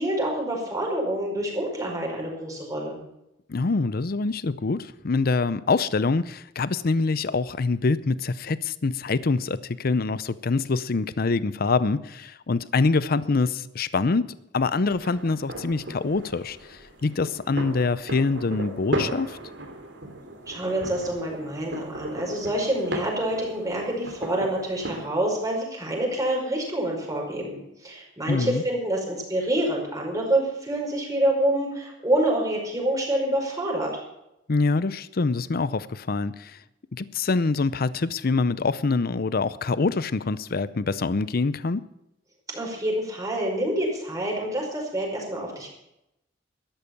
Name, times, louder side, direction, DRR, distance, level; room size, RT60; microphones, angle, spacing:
voice 1, 0.0-3.0 20.5-34.0 42.5-45.7, right 1 dB, 20° right, -1 dB, 5.1 m, -27 dB
voice 2, 3.5-19.4 28.3-28.6 34.5-36.6 36.9-41.8, left 3 dB, 55° left, 16 dB, 0.6 m, -25 dB
sound 1, 14.9-25.1, right 1 dB, 70° right, 3.0 m, -36 dB
13.0 x 11.5 x 7.1 m, 0.85 s
head